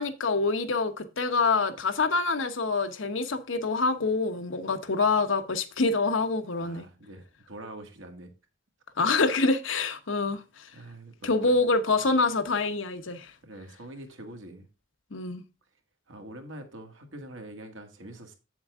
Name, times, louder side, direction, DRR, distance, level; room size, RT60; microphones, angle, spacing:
voice 1, 0.0-6.8 9.0-10.4 11.2-13.3 15.1-15.4, left 3 dB, 80° left, 1.0 m, -26 dB
voice 2, 6.6-8.3 9.1-9.2 10.7-11.6 12.0-12.1 13.4-14.7 16.1-18.4, right 1 dB, 80° right, 1.9 m, -44 dB
8.2 x 7.1 x 3.6 m
head